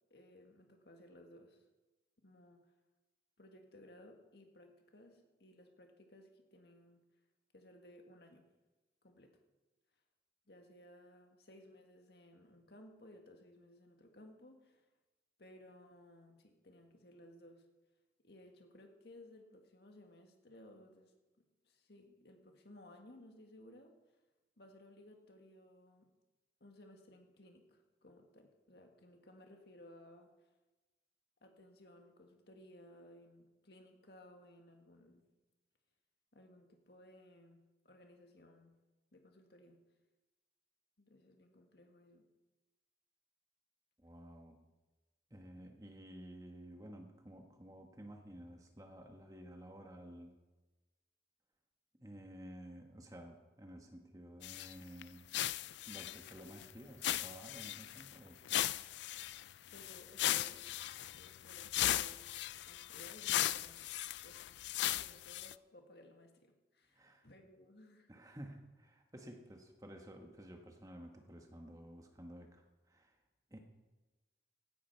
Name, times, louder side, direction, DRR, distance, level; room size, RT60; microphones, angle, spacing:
voice 1, 0.1-1.6 2.2-2.7 3.4-7.0 7.5-8.5 9.0-9.4 10.5-14.9 15.4-17.7 18.2-24.0 24.6-26.1 26.6-30.5 31.4-35.3 36.3-38.8 39.1-39.8 41.0-42.3 59.7-60.6 61.0-62.2 62.6-63.9 64.2-68.1, left 1 dB, 65° left, 4 dB, 1.8 m, -59 dB
voice 2, 44.0-44.6 45.3-50.4 52.0-55.2 55.9-58.6 66.9-67.3 68.1-73.1 73.5-73.6, equal, 20° right, 3 dB, 1.4 m, -53 dB
sound 1, 54.4-54.7 55.0-55.1 55.3-56.7 57.0-58.1 58.5-65.5, left 13 dB, 80° left, 0.4 m, -37 dB
16.5 x 12.5 x 4.6 m, 1.1 s
head